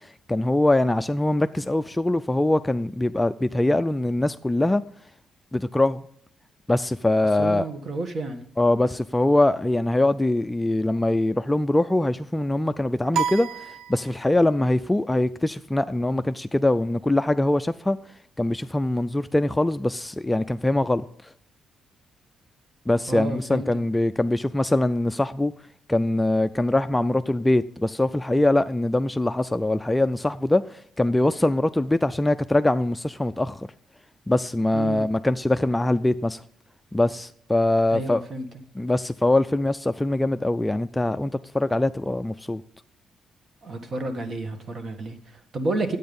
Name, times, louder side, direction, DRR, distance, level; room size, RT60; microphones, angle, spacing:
voice 1, 0.3-4.8 5.5-6.0 6.7-7.7 8.6-18.0 18.4-21.1 22.9-25.5 25.9-30.6 31.0-33.6 34.3-36.4 36.9-38.2 38.8-42.6, left 1 dB, 10° left, 0.4 m, -23 dB
voice 2, 7.4-8.4 23.1-23.8 34.7-35.0 37.9-38.5 43.6-46.0, right 2 dB, 45° right, 1.6 m, -31 dB
sound 1, 13.1-14.6, right 7 dB, 70° right, 0.3 m, -30 dB
10.5 x 8.6 x 5.3 m
cardioid pair, 90°, 0 cm